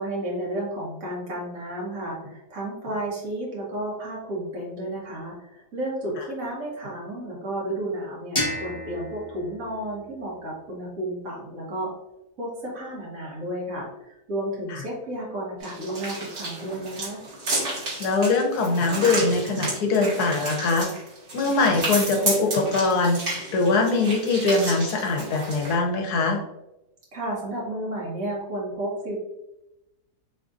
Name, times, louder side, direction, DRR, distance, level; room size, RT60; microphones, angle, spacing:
voice 1, 0.0-11.9 12.4-17.2 27.1-29.1, right 1 dB, 55° right, -4 dB, 1.8 m, -32 dB
sound 1, 8.4-11.2, left 1 dB, 25° left, 0.9 m, -33 dB
sound 2, 15.6-25.7, right 2 dB, 75° right, 2.1 m, -31 dB
voice 2, 18.0-20.9 21.3-26.4, left 3 dB, 75° left, 2 dB, 1.3 m, -22 dB
4.2 x 3.6 x 2.5 m, 0.91 s
omnidirectional pair, 1.7 m